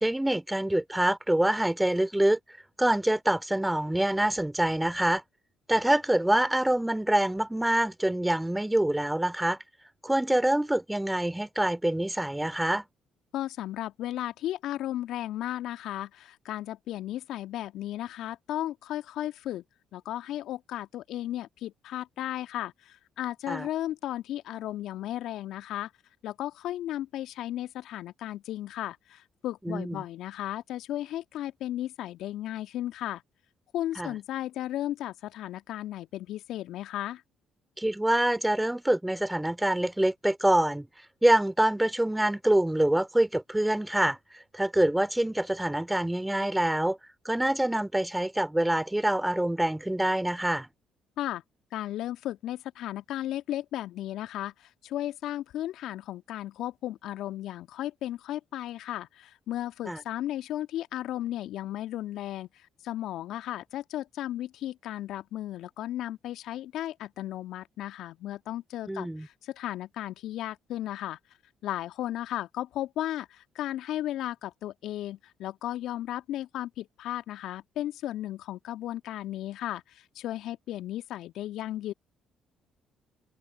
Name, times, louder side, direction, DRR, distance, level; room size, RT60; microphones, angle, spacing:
voice 1, 0.0-2.4 2.8-5.2 5.7-9.6 10.0-12.8 23.5-23.7 29.7-30.0 34.0-34.1 37.8-47.0 47.2-50.7 59.9-60.0 68.9-69.3, right 1 dB, 10° right, 2.7 m, -26 dB
voice 2, 13.3-19.6 19.9-25.9 26.2-33.2 33.7-37.2 51.2-51.4 51.7-71.2 71.6-81.9, left 13 dB, 65° left, 1.7 m, -35 dB
hypercardioid pair, 45°, 0 cm